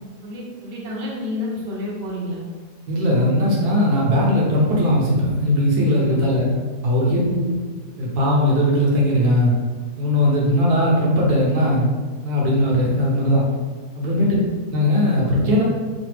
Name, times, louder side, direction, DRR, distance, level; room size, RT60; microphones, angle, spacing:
voice 1, 0.2-2.4 7.1-7.6 14.3-14.5, left 1 dB, 55° right, -5 dB, 0.7 m, -29 dB
voice 2, 2.9-6.5 6.8-7.2 8.0-9.5 10.0-11.9 12.2-13.5 14.0-14.3 14.7-15.6, left 1 dB, 70° right, -4 dB, 1.2 m, -18 dB
3.2 x 2.0 x 3.2 m, 1.4 s
omnidirectional pair, 1.7 m